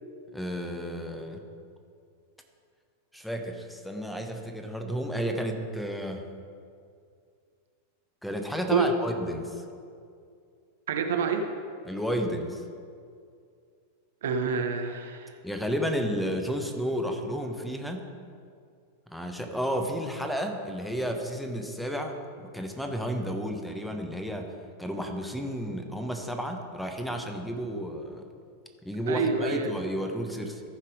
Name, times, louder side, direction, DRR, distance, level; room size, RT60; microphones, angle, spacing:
voice 1, 0.3-1.5 3.1-6.3 8.2-9.7 11.8-12.6 15.4-18.0 19.1-24.5 24.8-28.2 28.8-30.6, equal, ahead, 3 dB, 1.0 m, -32 dB
voice 2, 10.9-11.5 14.2-15.3 29.1-29.7, right 6 dB, 60° right, 6 dB, 0.8 m, -27 dB
14.0 x 5.9 x 4.9 m, 2.3 s
figure-of-eight pair, 90°, 0 cm